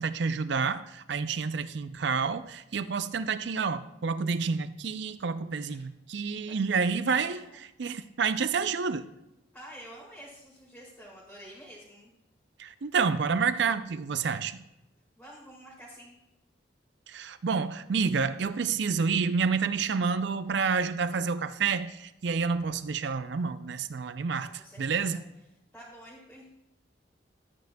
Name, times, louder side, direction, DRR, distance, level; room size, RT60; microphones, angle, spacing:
voice 1, 0.0-7.4 7.8-9.0 12.6-14.6 17.1-24.5 24.8-25.2, right 5 dB, 65° right, 13 dB, 0.5 m, -29 dB
voice 2, 7.1-7.6 9.5-12.1 15.2-16.2 24.3-25.2 25.7-26.5, equal, 5° left, -7 dB, 1.8 m, -49 dB
13.0 x 9.2 x 2.2 m, 0.90 s
head